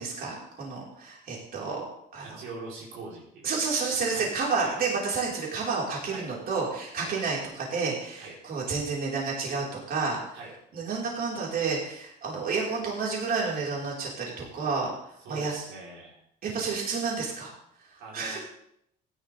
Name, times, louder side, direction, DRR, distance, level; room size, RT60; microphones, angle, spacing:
voice 1, 0.0-1.8 2.1-2.4 3.4-10.4 10.7-14.9 15.3-15.6 16.4-17.5 18.1-18.4, right 4 dB, 50° right, -3 dB, 4.9 m, -30 dB
voice 2, 2.2-3.5 4.1-4.3 4.6-4.8 6.1-6.3 7.0-7.1 8.2-8.3 10.3-10.5 15.2-16.2 18.0-18.4, right 3 dB, 80° right, -4 dB, 4.3 m, -42 dB
15.5 x 11.5 x 3.6 m, 0.73 s
cardioid pair, 110°, 20 cm